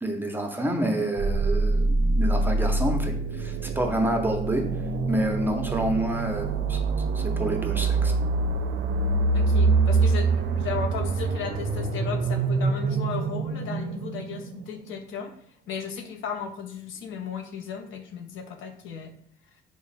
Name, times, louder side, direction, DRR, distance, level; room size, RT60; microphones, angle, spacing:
voice 1, 0.0-4.7 5.1-6.8 7.1-8.1, right 1 dB, 10° right, 3 dB, 0.5 m, -28 dB
sound 1, 1.2-14.9, right 3 dB, 60° right, 0.4 m, -25 dB
voice 2, 9.3-15.3 15.7-19.1, left 6 dB, 75° left, 3 dB, 0.6 m, -35 dB
3.3 x 2.1 x 3.9 m, 0.63 s
cardioid pair, 90°, 20 cm